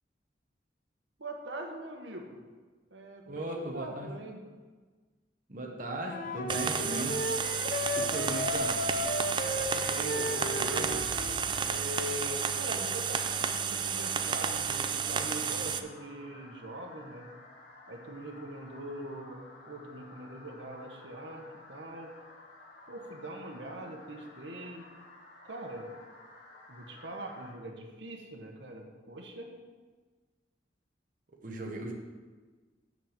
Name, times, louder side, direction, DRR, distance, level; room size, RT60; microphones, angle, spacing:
voice 1, 1.2-2.4 2.9-3.4 3.7-4.4 9.4-11.1 11.7-17.3 17.9-22.1 22.9-24.9 25.4-25.9 26.7-29.5, right 1 dB, 85° right, 2 dB, 1.2 m, -42 dB
voice 2, 3.3-4.1 5.5-7.2 7.9-8.9 31.4-31.9, right 2 dB, 50° right, 1 dB, 1.1 m, -37 dB
Wind instrument woodwind instrument, 6.1-11.4, left 1 dB, 50° left, 0.6 m, -35 dB
sound 1, 6.5-15.8, right 6 dB, 25° right, 0.4 m, -32 dB
sound 2, 11.0-27.5, left 2 dB, 70° left, 2.0 m, -53 dB
6.7 x 6.2 x 7.3 m, 1.4 s
head